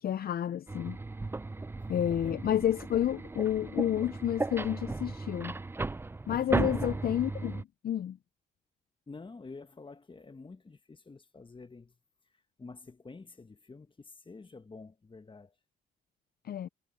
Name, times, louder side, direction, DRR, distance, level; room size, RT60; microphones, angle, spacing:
voice 1, 0.0-1.0 1.9-5.5 6.3-8.2 16.4-16.7, left 10 dB, 55° left, 0.6 m, -30 dB
sound 1, 0.7-7.6, right 3 dB, 10° right, 0.4 m, -35 dB
voice 2, 9.1-11.9 12.6-15.5, left 3 dB, 25° left, 1.5 m, -48 dB
supercardioid pair, 60°, 19 cm